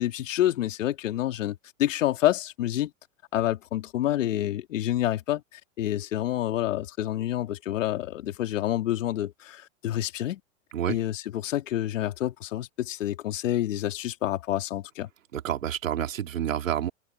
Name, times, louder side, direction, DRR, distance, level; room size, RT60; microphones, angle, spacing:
voice 1, 0.0-2.9 3.3-10.4 10.9-15.1, left 13 dB, 75° left, 2.6 m, -28 dB
voice 2, 15.3-16.9, right 10 dB, 85° right, 3.0 m, -28 dB
hypercardioid pair, 105°, 39 cm